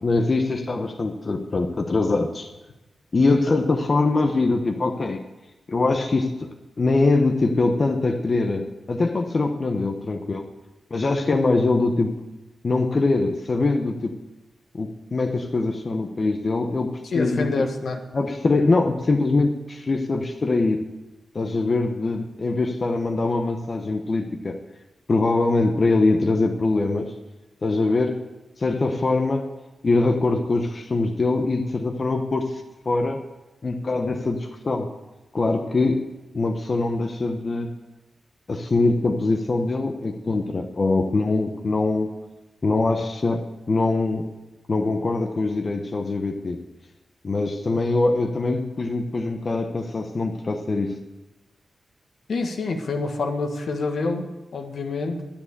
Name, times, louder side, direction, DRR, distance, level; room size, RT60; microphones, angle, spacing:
voice 1, 0.0-2.5 3.1-5.2 5.7-6.5 6.8-10.4 10.9-12.2 12.6-14.1 14.7-17.7 18.1-20.8 21.3-24.6 25.1-27.1 27.6-28.2 28.6-29.6 29.8-33.2 33.6-34.9 35.3-36.0 36.3-37.7 38.5-42.1 42.6-44.3 44.7-46.6 47.2-50.9, left 3 dB, 40° left, 3 dB, 1.0 m, -23 dB
voice 2, 17.1-18.0 52.3-55.2, left 3 dB, 75° left, 4 dB, 1.5 m, -27 dB
10.5 x 10.0 x 6.8 m, 1.1 s
wide cardioid pair, 90°, 0 cm